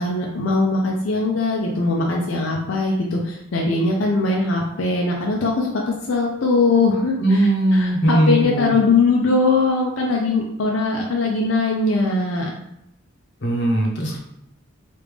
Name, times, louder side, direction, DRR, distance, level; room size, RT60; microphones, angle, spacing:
voice 1, 0.0-5.7 6.1-7.4 7.7-12.4, left 3 dB, 85° left, -1 dB, 0.5 m, -20 dB
voice 2, 7.2-8.7 13.4-14.2, right 1 dB, 60° left, -1 dB, 0.8 m, -19 dB
3.2 x 2.5 x 3.4 m, 0.78 s
head